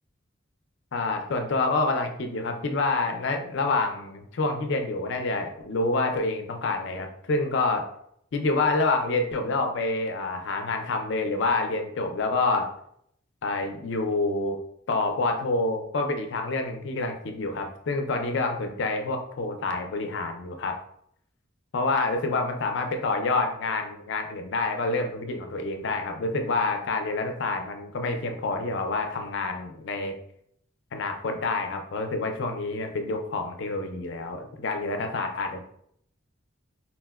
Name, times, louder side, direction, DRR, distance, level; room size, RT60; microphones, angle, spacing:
voice 1, 0.9-7.9 8.3-12.7 13.4-14.6 14.9-20.8 21.7-30.2 30.9-35.6, left 3 dB, 60° left, 5 dB, 0.4 m, -27 dB
4.1 x 2.1 x 2.2 m, 0.70 s
head